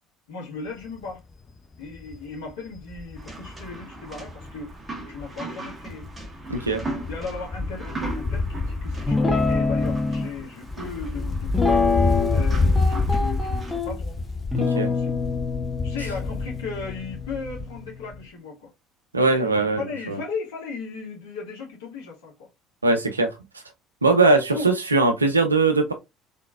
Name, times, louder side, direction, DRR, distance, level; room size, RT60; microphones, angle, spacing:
voice 1, 0.3-1.2 1.8-6.1 7.1-14.2 14.6-15.1 15.8-18.7 19.2-22.5 24.5-24.7, left 4 dB, 65° left, 1.9 m, -36 dB
Wind, 0.8-1.1 1.5-1.6 1.9-5.4 5.7-17.9 18.1-18.2, left 3 dB, 30° left, 0.8 m, -28 dB
sound 1, 3.2-13.8, right 2 dB, 20° right, 1.4 m, -39 dB
voice 2, 6.5-6.8 14.6-14.9 19.1-20.2 22.8-23.3 24.0-25.9, right 3 dB, 85° right, 0.6 m, -20 dB
Guitar, 9.1-10.3 11.5-12.5 12.8-13.9 14.5-18.0, left 4 dB, 5° left, 1.4 m, -25 dB
3.8 x 3.6 x 2.4 m
figure-of-eight pair, 60°, 0 cm